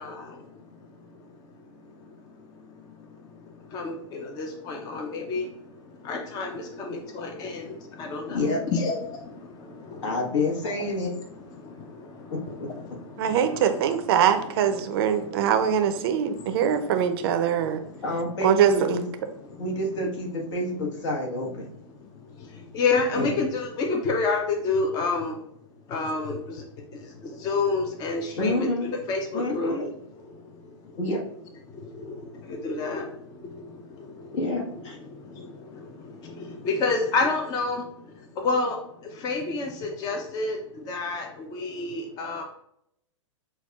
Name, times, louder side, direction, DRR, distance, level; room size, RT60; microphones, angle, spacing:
voice 1, 0.0-10.2 11.4-13.6 15.1-15.5 16.4-16.9 17.4-18.0 19.3-19.6 22.0-25.4 25.9-28.7 29.1-29.7 30.1-31.0 31.7-34.4 35.1-42.4, left 3 dB, 25° left, 3 dB, 0.5 m, -31 dB
voice 2, 10.0-11.1 12.3-12.7 18.0-19.0 19.6-21.7 23.2-23.3 28.4-28.9 29.3-29.9 31.0-31.2 34.3-35.0, left 2 dB, 65° left, -1 dB, 1.2 m, -28 dB
voice 3, 13.2-17.8 18.4-19.0, right 8 dB, 50° right, 8 dB, 0.5 m, -23 dB
5.9 x 2.3 x 2.3 m, 0.74 s
hypercardioid pair, 120°, 16 cm